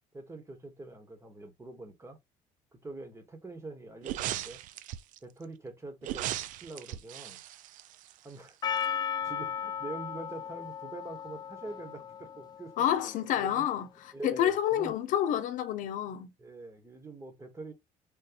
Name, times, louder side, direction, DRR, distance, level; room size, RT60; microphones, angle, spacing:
voice 1, 0.1-2.2 2.7-4.6 5.2-7.4 8.2-8.6 9.0-12.7 13.0-13.6 14.1-14.9 16.4-17.7, right 2 dB, 20° right, 1.3 m, -44 dB
sound 1, 4.0-5.2 6.0-8.5 8.8-8.9, right 13 dB, 65° right, 0.4 m, -37 dB
Percussion, 8.6-13.2, left 8 dB, 30° left, 0.3 m, -36 dB
voice 2, 12.8-16.3, left 10 dB, 65° left, 0.8 m, -29 dB
3.8 x 2.6 x 2.7 m
cardioid pair, 95°, 14 cm